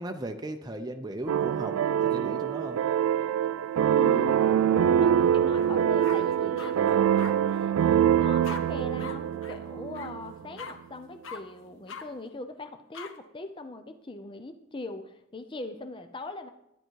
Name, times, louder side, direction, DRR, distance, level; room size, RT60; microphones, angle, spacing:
voice 1, 0.0-2.8 10.4-10.6, right 1 dB, 20° right, 5 dB, 0.6 m, -37 dB
sound 1, 1.3-10.3, right 9 dB, 80° right, 0.3 m, -24 dB
voice 2, 3.9-16.5, left 2 dB, 25° left, 8 dB, 0.6 m, -41 dB
sound 2, 5.5-5.7 6.0-6.7 7.2-7.3 8.4-8.6 9.0-9.1 9.4-9.6 9.9-10.1 10.6-10.7 11.2-11.4 11.9-12.0 12.9-13.1, left 5 dB, 65° left, 1.0 m, -40 dB
10.5 x 10.0 x 4.7 m, 0.82 s
head